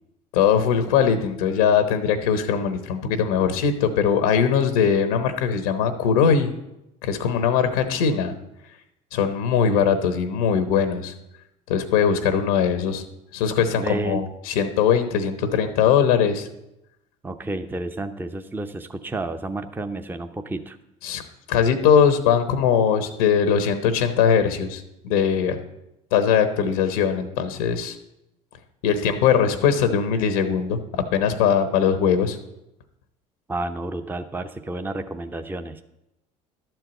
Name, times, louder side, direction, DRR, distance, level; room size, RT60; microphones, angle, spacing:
voice 1, 0.3-6.5 7.0-8.3 9.1-11.1 11.7-13.0 13.3-16.5 21.0-21.2 21.5-25.6 26.1-28.0 28.8-32.4, left 7 dB, 90° left, 9 dB, 1.0 m, -21 dB
voice 2, 13.8-14.2 17.2-20.8 33.5-35.8, right 2 dB, 10° right, 8 dB, 0.7 m, -30 dB
11.5 x 4.6 x 7.9 m, 0.89 s
supercardioid pair, 85°, 17 cm